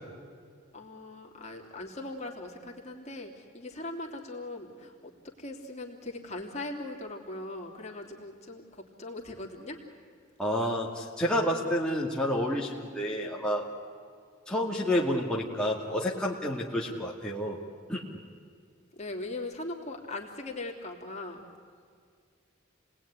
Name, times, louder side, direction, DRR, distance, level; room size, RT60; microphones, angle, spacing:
voice 1, 0.7-9.8 18.9-21.4, left 2 dB, 35° left, 0 dB, 3.2 m, -40 dB
voice 2, 10.4-13.6 14.5-17.6 17.9-18.0, equal, 5° left, -5 dB, 2.3 m, -29 dB
29.0 x 20.0 x 9.9 m, 2.2 s
head